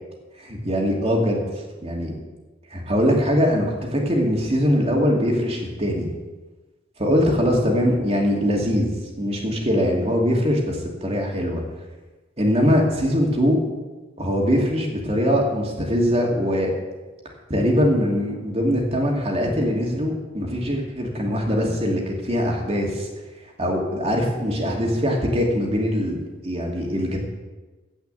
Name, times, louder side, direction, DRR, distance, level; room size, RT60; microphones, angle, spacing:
voice 1, 0.4-1.4 1.8-2.1 2.7-6.1 7.0-8.9 9.2-11.6 12.4-13.6 14.2-16.7 17.5-23.1 23.6-26.2 26.4-27.2, equal, 35° right, 0 dB, 2.6 m, -22 dB
16.0 x 5.7 x 7.9 m, 1.2 s
head